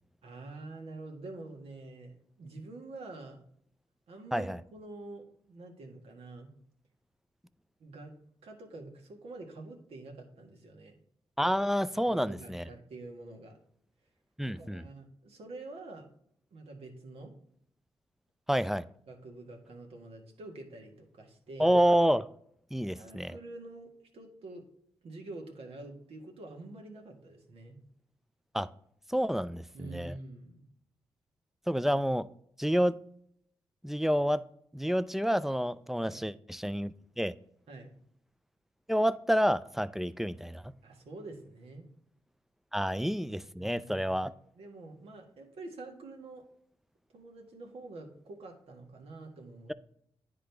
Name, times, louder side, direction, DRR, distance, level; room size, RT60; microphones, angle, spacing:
voice 1, 0.2-3.4 4.1-6.5 7.8-8.1 8.4-10.9 12.1-13.5 14.4-16.1 16.5-17.3 19.1-21.8 23.0-24.6 25.0-27.8 29.7-30.6 36.0-36.3 37.7-37.9 40.8-41.9 43.6-44.3 44.5-46.4 47.1-49.7, right 2 dB, 70° right, 2 dB, 1.5 m, -47 dB
voice 2, 11.4-12.6 14.4-14.8 18.5-18.8 21.6-22.3 22.7-23.4 28.5-28.7 29.1-30.1 31.7-32.3 32.6-33.0 33.8-34.4 34.7-37.3 38.9-40.7 42.7-44.3, equal, 5° right, 16 dB, 0.4 m, -28 dB
10.0 x 3.8 x 3.4 m, 0.67 s
supercardioid pair, 50°, 10 cm